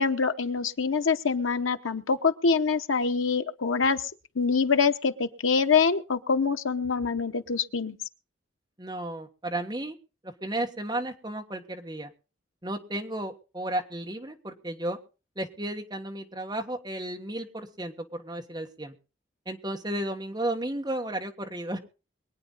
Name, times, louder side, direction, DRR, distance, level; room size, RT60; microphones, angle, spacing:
voice 1, 0.0-4.0 4.4-8.0, left 5 dB, 90° left, 0.9 m, -25 dB
voice 2, 8.8-10.0 10.2-12.1 12.6-15.0 15.3-18.9 19.4-21.8, right 1 dB, 20° right, 1.5 m, -33 dB
23.0 x 9.0 x 4.1 m
head